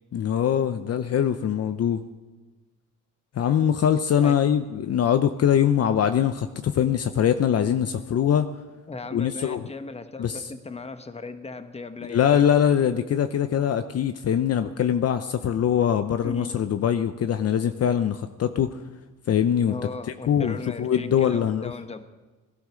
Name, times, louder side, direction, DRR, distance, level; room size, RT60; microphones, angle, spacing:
voice 1, 0.1-2.0 3.4-8.5 9.1-9.6 10.2-10.4 12.0-18.8 19.3-19.7 20.3-21.7, left 9 dB, 55° left, 9 dB, 0.7 m, -22 dB
voice 2, 8.9-12.5 16.2-16.5 19.7-22.0, left 3 dB, 20° left, 9 dB, 1.3 m, -37 dB
17.0 x 11.5 x 6.3 m, 1.2 s
cardioid pair, 90°, 30 cm